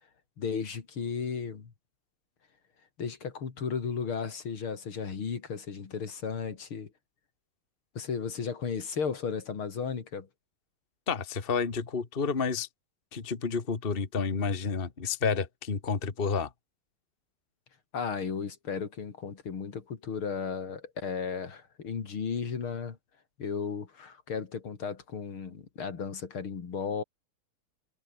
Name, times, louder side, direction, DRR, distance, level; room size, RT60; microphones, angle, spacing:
voice 1, 0.4-1.7 3.0-6.9 7.9-10.3 17.9-23.0 23.4-27.0, left 6 dB, 70° left, 3.4 m, -34 dB
voice 2, 11.1-12.7 13.1-16.5, left 5 dB, 25° left, 1.8 m, -30 dB
omnidirectional pair, 2.4 m